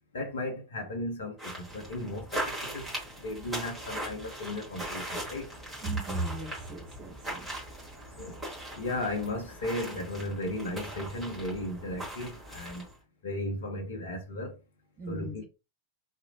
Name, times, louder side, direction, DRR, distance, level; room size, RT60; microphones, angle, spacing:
voice 1, 0.1-2.9 3.2-5.5 8.2-8.4 8.7-12.9 13.2-14.6 15.1-15.5, left 1 dB, 65° left, 0.7 m, -35 dB
sound 1, 1.4-13.0, right 1 dB, 5° right, 1.4 m, -40 dB
voice 2, 5.8-7.5 8.1-8.2 15.0-15.4, right 2 dB, 30° right, 0.6 m, -36 dB
2.8 x 2.0 x 2.7 m
figure-of-eight pair, 90°, 0 cm